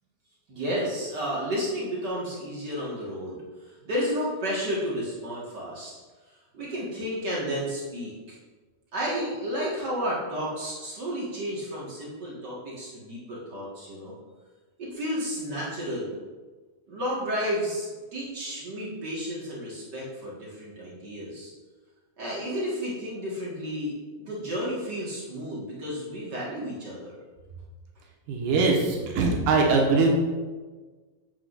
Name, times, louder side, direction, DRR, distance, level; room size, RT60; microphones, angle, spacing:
voice 1, 0.5-3.4 3.8-5.9 6.5-8.3 8.9-14.1 14.8-16.2 16.9-21.5 22.2-23.9 24.2-27.1, equal, 60° right, -6 dB, 1.0 m, -32 dB
voice 2, 28.3-30.1, right 3 dB, 85° right, -1 dB, 3.2 m, -22 dB
10.5 x 8.0 x 2.5 m, 1.3 s
omnidirectional pair, 4.4 m